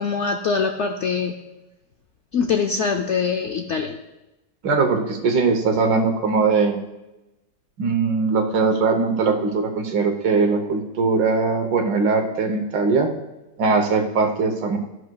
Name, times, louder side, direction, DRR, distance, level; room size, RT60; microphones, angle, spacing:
voice 1, 0.0-1.3 2.3-4.0, left 5 dB, 80° left, 4 dB, 0.6 m, -23 dB
voice 2, 4.6-6.8 7.8-13.1 13.6-14.8, right 4 dB, 80° right, 4 dB, 1.7 m, -20 dB
13.5 x 11.0 x 2.3 m, 0.98 s
omnidirectional pair, 1.9 m